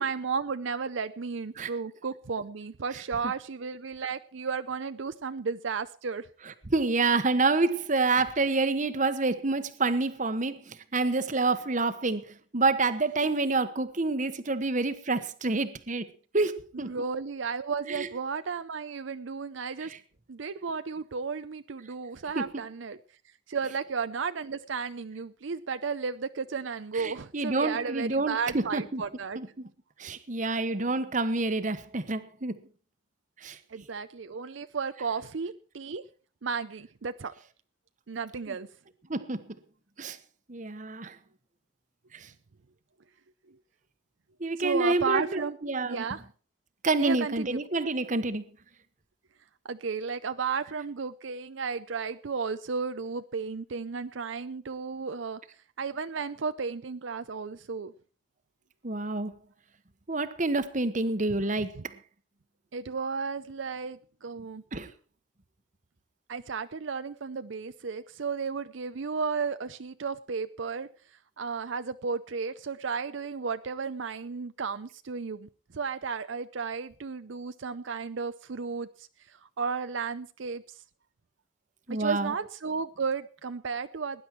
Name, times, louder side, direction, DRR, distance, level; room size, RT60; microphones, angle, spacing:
voice 1, 0.0-6.3 16.7-19.9 20.3-23.0 23.5-29.4 33.7-36.0 36.4-37.3 38.1-38.7 44.6-45.6 45.8-46.2 47.0-47.6 49.6-55.4 55.8-57.9 61.3-61.8 62.7-64.6 66.3-80.8 81.9-84.2, right 5 dB, 70° right, 0.6 m, -33 dB
voice 2, 2.9-3.3 6.4-12.3 12.5-16.1 16.3-16.9 17.9-18.1 19.8-20.0 22.3-22.5 23.6-23.7 26.9-29.0 29.3-29.7 30.0-32.6 33.4-33.6 38.5-38.6 39.1-39.5 40.0-40.2 40.5-41.2 42.1-42.3 44.4-46.1 46.8-48.4 58.8-59.4 60.1-61.9 64.7-64.9 81.9-82.4, right 3 dB, 40° right, 1.1 m, -28 dB
19.0 x 10.5 x 4.5 m
head